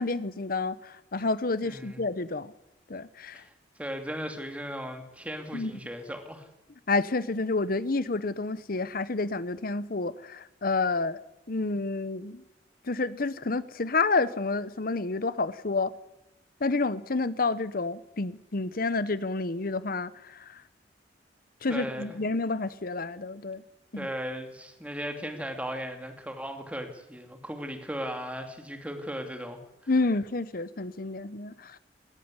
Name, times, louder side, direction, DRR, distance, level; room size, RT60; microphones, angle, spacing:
voice 1, 0.0-2.5 2.9-3.4 5.5-5.7 6.9-11.2 11.5-12.4 12.9-15.9 16.6-20.6 21.6-23.6 23.9-24.1 29.9-31.8, left 3 dB, 55° left, 16 dB, 0.9 m, -29 dB
voice 2, 1.6-2.0 3.3-3.5 3.8-6.5 21.7-22.2 24.0-29.6, equal, 5° right, 5 dB, 2.6 m, -37 dB
18.5 x 14.5 x 9.8 m, 0.94 s
head